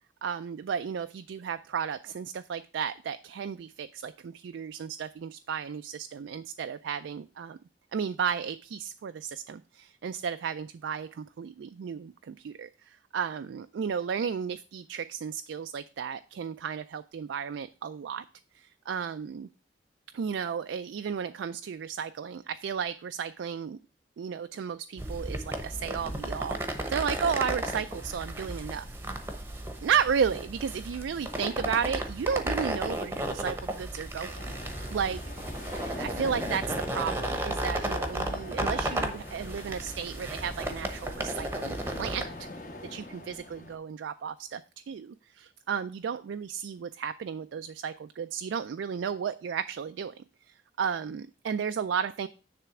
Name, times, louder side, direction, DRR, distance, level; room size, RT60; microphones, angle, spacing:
voice 1, 0.2-7.6 7.9-18.2 18.6-19.5 20.1-23.8 24.2-28.9 29.8-34.3 34.9-35.2 35.7-42.5 42.9-44.6 44.9-50.2 50.8-52.3, right 7 dB, 80° right, 10 dB, 0.3 m, -33 dB
sound 1, 25.0-42.2, right 1 dB, 15° right, 0.9 m, -34 dB
sound 2, 34.3-43.7, left 1 dB, 40° left, 1.3 m, -43 dB
10.0 x 3.4 x 5.9 m, 0.36 s
head